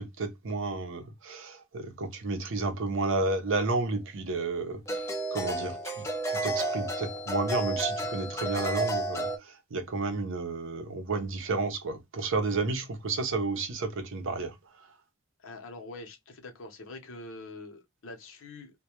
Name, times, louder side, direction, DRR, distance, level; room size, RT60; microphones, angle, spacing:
voice 1, 0.0-9.3 9.7-14.5, right 3 dB, 55° right, 0.6 m, -31 dB
sound 1, 3.5-3.6 4.9-9.4, right 2 dB, 15° left, 0.4 m, -32 dB
voice 2, 15.4-18.7, left 2 dB, 60° left, 0.8 m, -44 dB
2.2 x 2.1 x 2.9 m
head